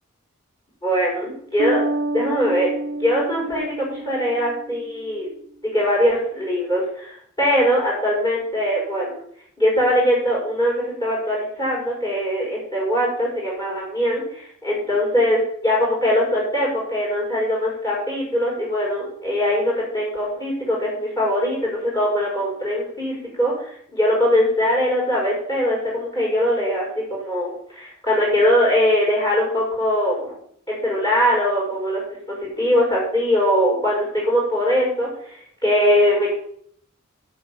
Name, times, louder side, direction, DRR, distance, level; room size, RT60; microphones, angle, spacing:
voice 1, 0.8-1.8 2.1-2.7 3.0-5.3 5.7-9.2 9.6-30.3 30.7-32.0 32.4-35.4 35.6-36.3, equal, 20° left, -4 dB, 5.4 m, -21 dB
Bass guitar, 1.6-5.1, right 2 dB, 60° right, 0.6 m, -28 dB
9.6 x 6.4 x 8.3 m, 0.64 s
head